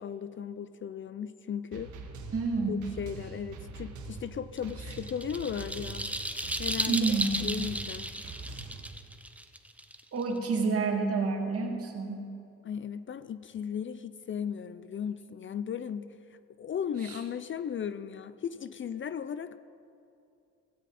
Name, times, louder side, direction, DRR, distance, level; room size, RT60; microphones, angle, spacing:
voice 1, 0.0-1.9 2.7-6.1 6.6-8.1 12.6-19.6, left 8 dB, 40° left, 14 dB, 0.5 m, -36 dB
sound 1, 1.7-8.9, right 3 dB, 75° right, 1.7 m, -44 dB
voice 2, 2.3-2.8 6.9-7.5 10.1-12.3 17.0-17.2, right 4 dB, 50° right, 1 dB, 2.6 m, -29 dB
sound 2, 4.6-10.4, right 1 dB, 5° right, 0.9 m, -35 dB
17.0 x 16.0 x 4.2 m, 2.7 s
cardioid pair, 90°, 30 cm